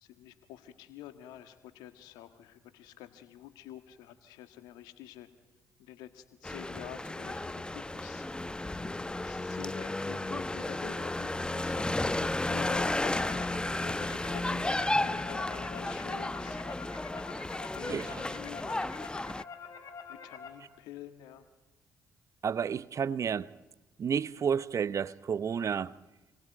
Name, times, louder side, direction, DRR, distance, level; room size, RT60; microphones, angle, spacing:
voice 1, 0.0-5.3 5.8-8.3 9.2-16.6 17.7-19.1 20.1-21.5, left 11 dB, 75° left, 1.6 m, -48 dB
sound 1, 6.4-19.4, left 2 dB, 15° left, 0.9 m, -33 dB
sound 2, 12.8-20.5, left 6 dB, 55° left, 5.4 m, -46 dB
voice 2, 17.9-18.2 22.4-23.5 24.0-25.9, right 7 dB, 50° right, 0.8 m, -31 dB
28.0 x 20.5 x 9.2 m
hypercardioid pair, 50°, 7 cm